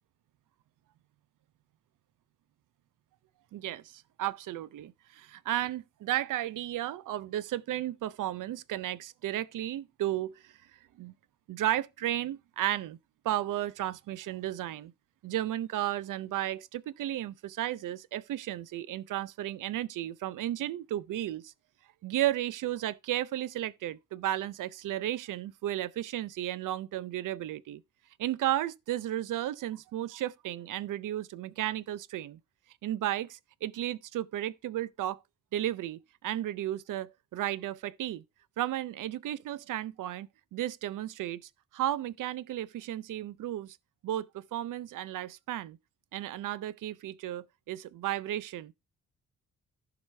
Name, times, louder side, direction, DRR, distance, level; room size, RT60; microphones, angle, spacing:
voice 1, 3.5-10.5 11.0-11.1 11.5-13.0 13.2-14.9 15.2-21.5 22.0-27.8 28.2-32.4 32.8-35.2 35.5-38.2 38.6-41.4 41.7-43.8 44.0-45.8 46.1-48.7, right 13 dB, 65° right, 0.5 m, -34 dB
15.0 x 5.0 x 3.2 m
cardioid pair, 145°, 35 cm